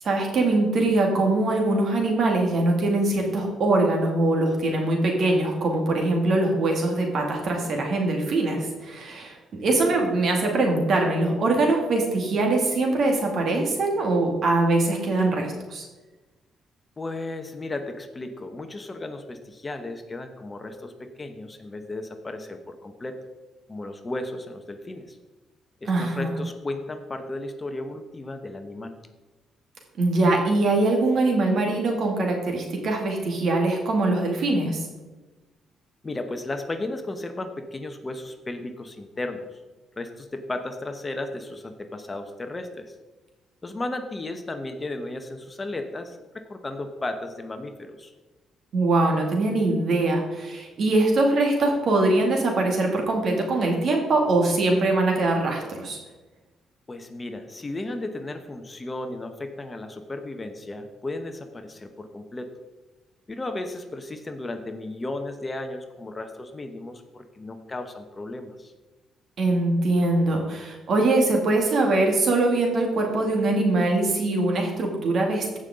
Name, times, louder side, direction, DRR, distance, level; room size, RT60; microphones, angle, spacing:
voice 1, 0.0-15.8 25.9-26.4 30.0-34.8 48.7-56.0 69.4-75.6, right 2 dB, 60° right, 1 dB, 2.3 m, -22 dB
voice 2, 17.0-23.2 23.7-25.2 25.8-29.0 36.0-39.6 40.0-42.9 43.6-48.1 56.9-62.5 63.3-68.7, left 2 dB, 25° left, 7 dB, 1.0 m, -34 dB
15.5 x 5.5 x 3.8 m, 1.2 s
cardioid pair, 90°, 0 cm